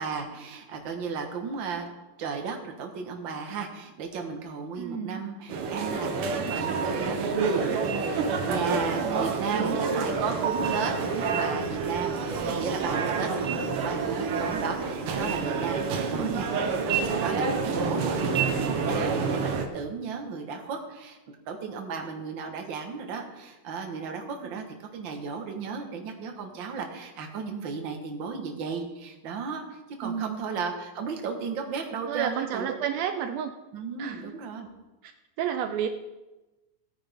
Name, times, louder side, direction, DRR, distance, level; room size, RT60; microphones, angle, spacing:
voice 1, 0.0-1.9 2.2-21.2 21.5-32.7 33.7-34.7, right 5 dB, 50° right, 3 dB, 1.5 m, -35 dB
voice 2, 4.8-5.2 9.0-10.1 16.1-16.4 24.4-24.6 30.0-30.4 32.1-33.5 34.0-34.2 35.0-35.1 35.4-35.9, right 8 dB, 90° right, 7 dB, 1.5 m, -32 dB
sound 1, 5.5-19.7, right 5 dB, 70° right, 1.3 m, -28 dB
17.5 x 9.3 x 3.5 m, 1.1 s
omnidirectional pair, 3.8 m